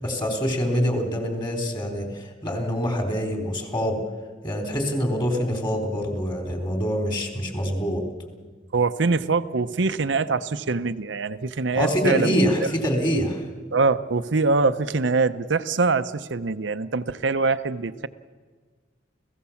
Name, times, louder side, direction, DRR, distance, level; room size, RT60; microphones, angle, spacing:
voice 1, 0.0-4.0 4.4-8.0 11.7-13.4, equal, 25° left, 3 dB, 3.5 m, -25 dB
voice 2, 8.7-12.4 13.7-18.1, right 3 dB, 75° right, 10 dB, 0.8 m, -23 dB
29.5 x 16.5 x 7.2 m, 1.5 s
head